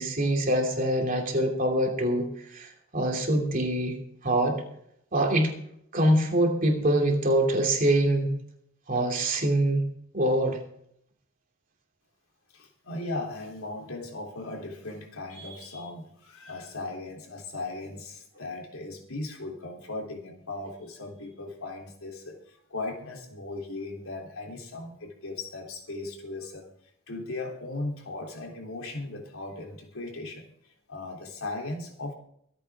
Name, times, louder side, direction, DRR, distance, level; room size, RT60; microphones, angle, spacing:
voice 1, 0.0-4.0 4.2-4.6 5.1-5.5 5.9-8.3 8.9-9.9 10.1-10.6, right 1 dB, 40° right, 1 dB, 2.9 m, -24 dB
voice 2, 12.5-26.7 27.1-32.1, left 2 dB, 80° left, 1 dB, 3.4 m, -37 dB
24.5 x 8.9 x 3.7 m, 0.71 s
head